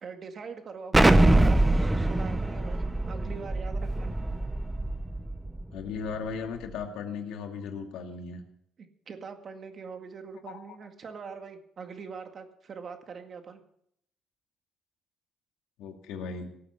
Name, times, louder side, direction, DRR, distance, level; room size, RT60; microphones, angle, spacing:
voice 1, 0.0-4.1 9.1-13.6, right 5 dB, 40° right, 6 dB, 1.9 m, -42 dB
Explosion, 0.9-5.6, right 2 dB, 10° right, 0.8 m, -23 dB
voice 2, 5.7-8.4 10.5-10.6 15.8-16.5, left 5 dB, 90° left, 3 dB, 2.3 m, -36 dB
17.5 x 7.7 x 7.2 m, 0.73 s
cardioid pair, 130°, 0 cm